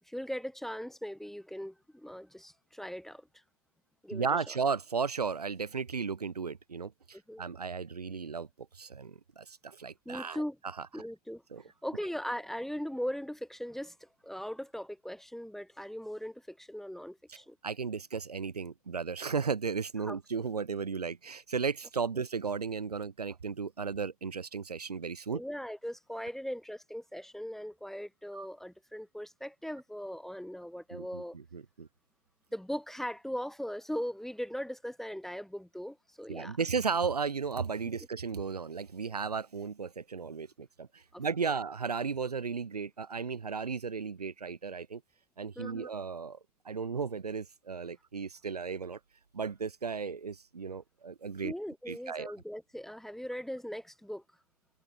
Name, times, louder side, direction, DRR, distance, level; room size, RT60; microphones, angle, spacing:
voice 1, 0.1-3.2 4.0-4.6 7.1-7.4 10.0-10.6 10.9-11.4 11.8-17.6 20.1-20.2 25.3-31.3 32.5-36.6 41.1-41.5 45.6-45.9 51.4-54.2, equal, ahead, 1.4 m, -39 dB
voice 2, 4.1-8.5 8.8-10.4 10.8-10.9 11.5-11.6 17.6-25.4 28.3-28.5 30.9-31.9 36.3-45.0 45.4-46.4 46.7-49.0 49.3-51.5 51.9-52.3, right 5 dB, 85° right, 1.7 m, -35 dB
figure-of-eight pair, 95°, 19 cm